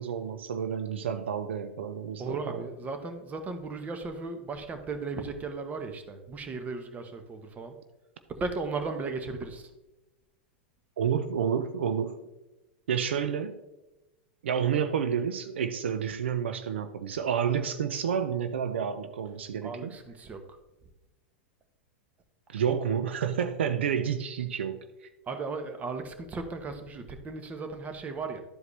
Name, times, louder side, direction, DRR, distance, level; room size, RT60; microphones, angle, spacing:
voice 1, 0.0-2.7 11.0-12.2 12.9-13.6 14.4-19.9 22.5-24.8, right 7 dB, 80° right, 10 dB, 0.6 m, -29 dB
voice 2, 2.2-7.8 8.4-9.7 19.6-20.4 25.3-28.4, right 3 dB, 25° right, 7 dB, 1.1 m, -36 dB
12.0 x 4.8 x 3.3 m, 1.0 s
hypercardioid pair, 105°, 6 cm